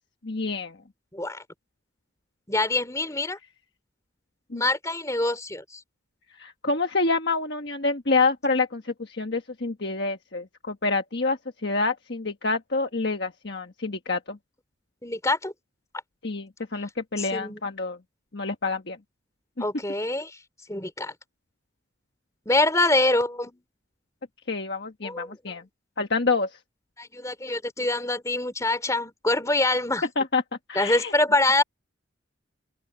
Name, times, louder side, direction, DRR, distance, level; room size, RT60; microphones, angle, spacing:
voice 1, 0.2-0.8 4.5-4.6 6.4-14.4 16.2-18.0 18.3-19.0 24.5-25.6 26.0-26.6 30.2-30.4 30.7-31.1, left 3 dB, 55° left, 1.4 m, -27 dB
voice 2, 1.1-1.4 2.5-3.4 4.6-5.8 15.0-15.5 17.2-17.6 19.6-20.4 20.7-21.1 22.4-23.6 25.0-25.3 27.0-30.0 30.7-31.6, left 2 dB, 15° left, 3.2 m, -25 dB
open air
head